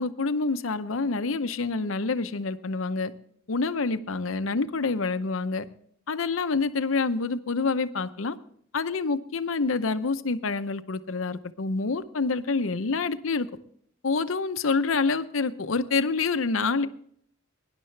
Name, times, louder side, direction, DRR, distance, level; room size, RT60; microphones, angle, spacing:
voice 1, 0.0-3.1 3.5-5.7 6.1-8.4 8.7-13.5 14.0-16.9, left 4 dB, 90° left, 0.7 m, -27 dB
18.5 x 10.5 x 3.3 m
head